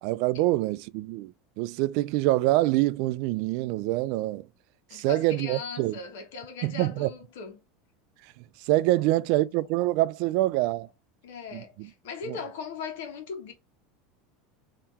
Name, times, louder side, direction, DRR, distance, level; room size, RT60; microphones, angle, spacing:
voice 1, 0.0-4.5 4.9-6.0 6.6-7.1 8.7-10.9 11.5-11.9 12.3-12.4, right 17 dB, 65° right, 0.3 m, -25 dB
voice 2, 4.9-7.6 11.2-13.5, left 5 dB, 80° left, 1.2 m, -39 dB
3.5 x 2.9 x 4.1 m
supercardioid pair, 110°, 0 cm